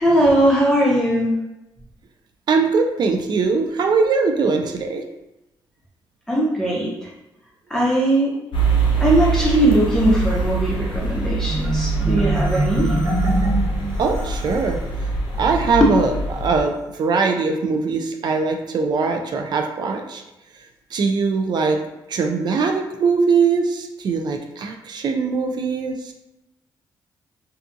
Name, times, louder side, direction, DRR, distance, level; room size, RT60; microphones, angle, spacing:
voice 1, 0.0-1.4 6.3-7.1 7.7-8.4 9.0-12.9 15.8-15.9, right 1 dB, 5° left, -6 dB, 0.6 m, -19 dB
voice 2, 2.5-5.0 14.0-14.8 15.4-20.2 20.9-21.8 22.1-26.1, right 4 dB, 60° right, 4 dB, 0.4 m, -21 dB
sound 1, 8.5-16.6, right 3 dB, 70° left, 0.6 m, -23 dB
Marimba xylophone, 11.5-14.8, right 1 dB, 40° right, 1.2 m, -25 dB
2.7 x 2.2 x 2.5 m, 0.92 s
cardioid pair, 80°, 8 cm